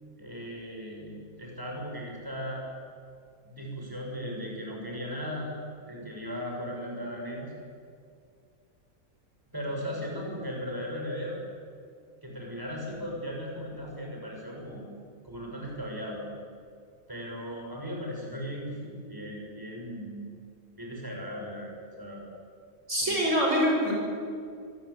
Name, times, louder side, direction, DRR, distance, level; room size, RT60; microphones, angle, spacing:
voice 1, 0.2-2.6 3.4-5.5 5.9-7.5 9.5-11.4 12.2-14.8 15.2-16.2 17.1-20.2 20.8-22.3 23.0-23.4, equal, 15° right, -1 dB, 6.5 m, -37 dB
voice 2, 22.9-23.9, equal, 55° right, -2 dB, 6.1 m, -24 dB
25.5 x 21.5 x 8.4 m, 2.3 s
omnidirectional pair, 1.5 m